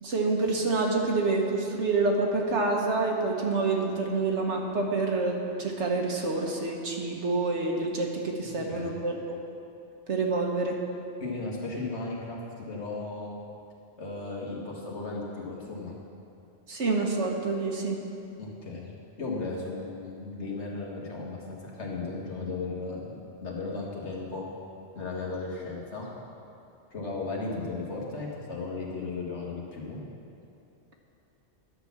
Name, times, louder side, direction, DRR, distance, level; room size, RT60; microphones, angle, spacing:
voice 1, 0.0-9.3 10.1-10.8 16.7-18.0, right 3 dB, 75° right, 1 dB, 1.5 m, -27 dB
voice 2, 8.4-9.0 11.2-13.3 14.0-16.0 18.4-23.1 23.4-24.5 24.9-26.1 26.9-30.0, left 3 dB, 70° left, -3 dB, 2.0 m, -36 dB
11.0 x 6.1 x 7.1 m, 2.7 s
omnidirectional pair, 1.2 m